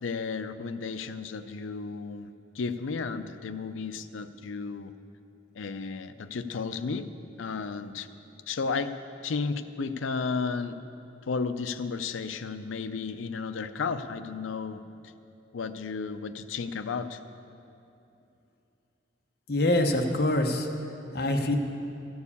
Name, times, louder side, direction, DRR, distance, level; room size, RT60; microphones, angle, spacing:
voice 1, 0.0-4.9 5.6-7.1 7.4-8.1 8.5-9.0 9.2-10.8 11.3-14.8 15.5-17.2, left 4 dB, 80° left, 10 dB, 0.5 m, -33 dB
voice 2, 19.5-20.7 21.1-21.6, left 1 dB, 55° left, 4 dB, 0.8 m, -25 dB
14.5 x 4.8 x 8.3 m, 2.8 s
head